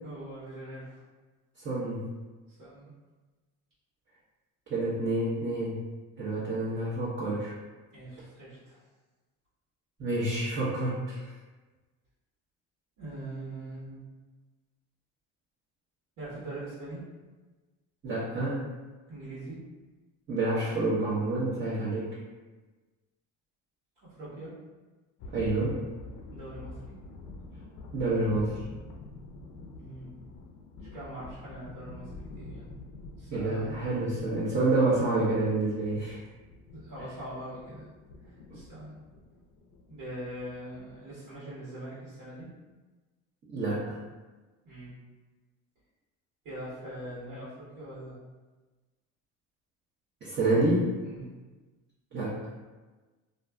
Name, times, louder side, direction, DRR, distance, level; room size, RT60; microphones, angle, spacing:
voice 1, 0.0-1.0 2.5-2.9 7.9-8.8 13.0-14.0 16.2-17.0 19.1-19.6 24.0-24.5 26.3-27.0 29.8-30.1 30.9-32.6 33.2-33.7 36.7-37.9 38.2-38.9 39.9-42.5 44.6-44.9 46.4-48.2 51.0-51.3, right 1 dB, 75° right, -10 dB, 1.3 m, -42 dB
voice 2, 1.6-2.0 4.7-5.8 6.2-7.5 10.0-11.3 18.0-18.7 20.3-22.1 25.3-25.8 27.9-28.6 33.3-36.2 43.5-44.0 50.2-50.9 52.1-52.4, right 2 dB, 30° right, -8 dB, 0.7 m, -28 dB
sound 1, 25.2-41.0, left 2 dB, 55° left, 0.5 m, -47 dB
2.5 x 2.4 x 2.2 m, 1.2 s
supercardioid pair, 85°, 36 cm